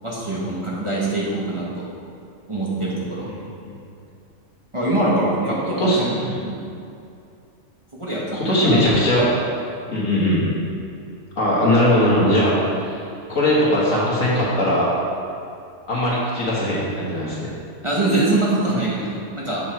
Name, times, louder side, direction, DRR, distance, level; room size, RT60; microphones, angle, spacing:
voice 1, 0.0-1.8 2.5-3.3 4.7-6.2 6.4-6.6 7.9-8.8 17.8-19.6, right 2 dB, 25° right, -6 dB, 1.4 m, -23 dB
voice 2, 8.3-9.3 9.9-10.5 11.4-13.0 13.3-14.9 15.9-17.5, left 1 dB, 70° left, -6 dB, 2.2 m, -19 dB
7.7 x 6.4 x 4.5 m, 2.5 s
omnidirectional pair, 1.4 m